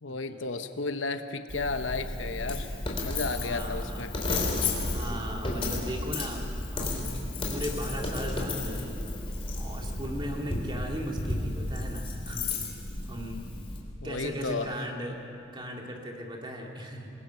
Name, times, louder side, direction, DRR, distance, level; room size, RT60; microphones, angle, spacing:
voice 1, 0.0-2.7 3.0-4.1 14.0-14.7, left 3 dB, 75° left, 8 dB, 1.0 m, -33 dB
Coin (dropping), 1.5-13.8, left 2 dB, 30° left, 3.1 m, -33 dB
voice 2, 3.3-4.1 4.8-6.5 6.7-7.1 7.5-9.0 9.6-12.5 13.1-13.5 14.0-15.2 15.5-17.1, equal, 25° right, 0 dB, 2.3 m, -37 dB
26.0 x 21.0 x 5.7 m, 2.7 s
head